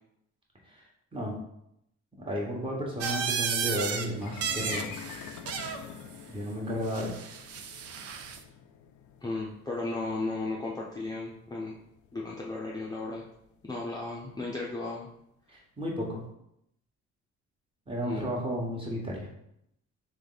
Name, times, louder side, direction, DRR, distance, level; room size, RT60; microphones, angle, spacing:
voice 1, 2.2-4.9 6.3-7.2 15.5-16.2 17.9-19.3, equal, 15° right, -3 dB, 1.3 m, -33 dB
sound 1, 3.0-4.1 4.3-5.8 6.9-8.4, right 6 dB, 55° right, 0.5 m, -33 dB
sound 2, 4.2-14.4, left 8 dB, 75° left, 0.5 m, -46 dB
voice 2, 9.2-11.8 12.1-13.2 13.6-15.1 18.0-18.3, left 2 dB, 15° left, -4 dB, 0.6 m, -35 dB
3.3 x 3.2 x 4.0 m, 0.77 s
cardioid pair, 90°, 30 cm